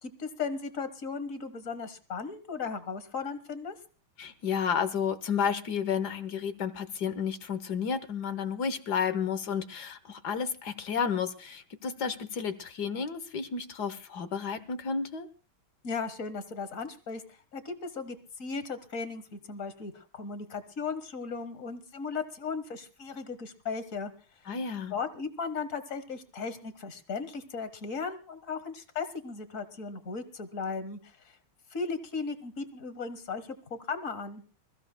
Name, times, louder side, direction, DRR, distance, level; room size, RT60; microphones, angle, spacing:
voice 1, 0.0-3.7 15.8-17.2 17.5-24.1 24.9-31.1 31.7-34.4, left 5 dB, 45° left, 11 dB, 1.6 m, -36 dB
voice 2, 4.2-15.3 24.5-24.9, left 6 dB, 60° left, 11 dB, 1.4 m, -31 dB
27.0 x 15.0 x 2.2 m, 0.37 s
omnidirectional pair, 2.2 m